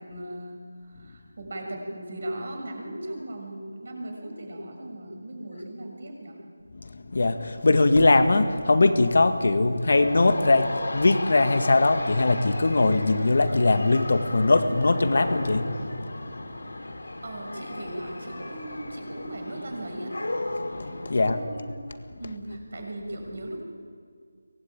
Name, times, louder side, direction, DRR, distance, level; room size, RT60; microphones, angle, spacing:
voice 1, 0.0-6.4 16.8-20.2 21.1-21.9 22.2-23.6, right 1 dB, 50° right, 1 dB, 6.6 m, -38 dB
voice 2, 7.1-15.9 16.6-16.7 20.6-21.4, left 2 dB, 55° left, 8 dB, 1.9 m, -21 dB
sound 1, 9.9-21.2, left 2 dB, 80° left, 4.3 m, -35 dB
23.5 x 20.0 x 9.0 m, 2.1 s
figure-of-eight pair, 175°, 0 cm